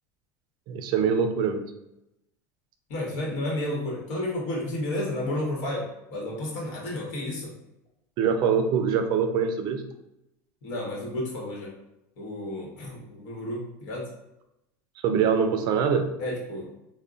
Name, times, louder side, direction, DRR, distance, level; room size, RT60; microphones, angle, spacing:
voice 1, 0.7-1.6 8.2-9.8 15.0-16.1, right 6 dB, 55° right, 6 dB, 0.4 m, -23 dB
voice 2, 2.9-5.8 6.1-7.5 10.6-11.7 12.2-14.1 16.2-16.7, left 1 dB, 70° left, -3 dB, 1.1 m, -31 dB
3.6 x 2.1 x 2.4 m, 0.88 s
supercardioid pair, 110°, 9 cm